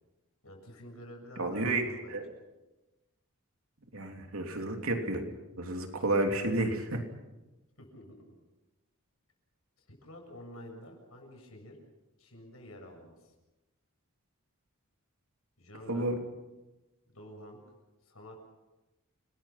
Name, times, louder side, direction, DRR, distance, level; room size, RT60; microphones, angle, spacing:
voice 1, 0.4-2.2 7.8-8.2 9.9-11.8 12.2-13.3 15.6-16.1 17.1-17.6 18.0-18.4, equal, 75° left, 2 dB, 7.5 m, -49 dB
voice 2, 1.4-1.8 2.1-2.2 3.9-5.2 5.6-7.0 15.9-16.2, right 2 dB, 70° right, 3 dB, 3.2 m, -30 dB
29.5 x 20.5 x 6.0 m, 1.0 s
head